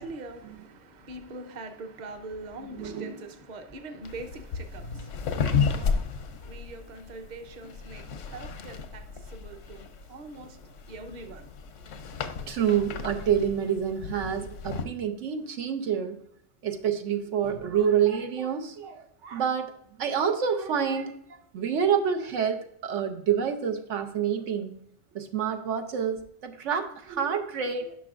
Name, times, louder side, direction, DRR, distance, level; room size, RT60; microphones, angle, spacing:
voice 1, 0.0-10.6 10.9-11.5, right 2 dB, 40° right, 0.9 m, -43 dB
voice 2, 2.7-3.2 4.8-5.1 12.5-16.2 16.6-19.7 20.0-24.7 25.1-28.0, right 8 dB, 85° right, 1.1 m, -28 dB
Bed creaking noises, 4.0-14.9, left 6 dB, 85° left, 1.0 m, -33 dB
10.5 x 6.0 x 2.4 m
omnidirectional pair, 1.2 m